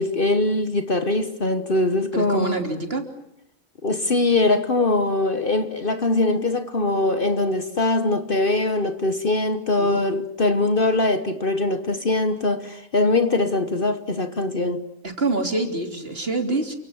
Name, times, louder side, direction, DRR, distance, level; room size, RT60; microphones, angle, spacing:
voice 1, 0.0-2.6 3.8-14.8, left 2 dB, 45° left, 1.3 m, -22 dB
voice 2, 2.1-3.1 9.8-10.0 15.0-16.8, right 3 dB, 45° right, 3.5 m, -26 dB
29.5 x 25.0 x 7.2 m
omnidirectional pair, 1.4 m